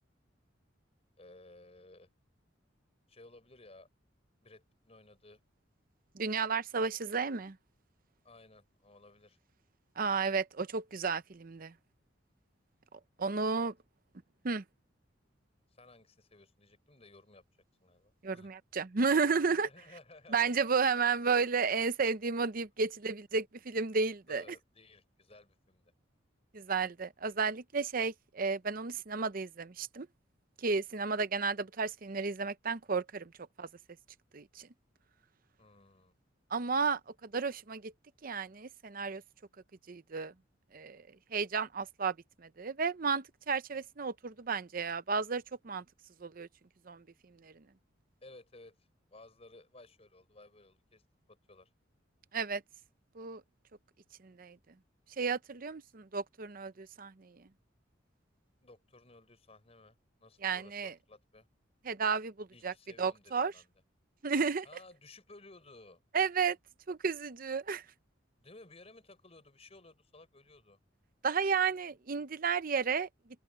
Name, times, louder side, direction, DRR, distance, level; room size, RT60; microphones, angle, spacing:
voice 1, 1.2-2.1 3.1-3.9 4.4-5.4 8.2-9.4 13.5-13.6 15.7-17.4 17.8-18.5 19.6-20.5 24.3-25.9 35.6-36.1 48.2-48.8 49.1-51.0 51.3-51.7 58.6-61.5 62.5-63.7 64.6-66.0 68.4-70.8, left 2 dB, 35° left, 5.2 m, -57 dB
voice 2, 6.2-7.6 10.0-11.7 13.2-13.7 14.4-14.6 18.2-19.7 20.3-24.4 26.5-30.1 30.6-33.3 33.6-33.7 34.3-34.7 36.5-37.9 38.2-39.2 39.9-40.3 40.7-41.0 41.3-42.1 42.4-45.8 46.2-46.5 46.9-47.0 47.4-47.5 52.3-52.6 53.2-53.4 54.2-54.6 55.2-57.3 60.4-60.9 61.9-63.5 64.2-64.7 66.1-66.6 66.9-67.8 71.2-73.1, right 5 dB, 45° right, 0.7 m, -32 dB
open air
head